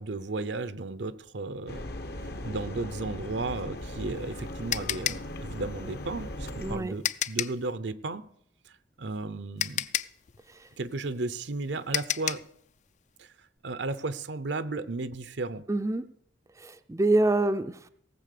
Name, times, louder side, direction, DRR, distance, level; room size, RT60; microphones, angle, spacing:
voice 1, 0.0-1.8 2.2-8.2 8.7-9.9 10.8-12.4 13.2-13.3 13.6-15.6, right 3 dB, 75° right, 14 dB, 0.7 m, -34 dB
sound 1, 1.7-6.8, left 1 dB, 60° left, 1.0 m, -38 dB
sound 2, 3.8-7.7 9.1-9.2 9.6-12.6, left 10 dB, 40° left, 0.4 m, -32 dB
voice 2, 6.6-6.9 10.5-10.7 15.7-16.0 16.6-17.8, right 2 dB, 15° right, 9 dB, 0.4 m, -26 dB
17.5 x 7.4 x 6.7 m, 0.70 s
head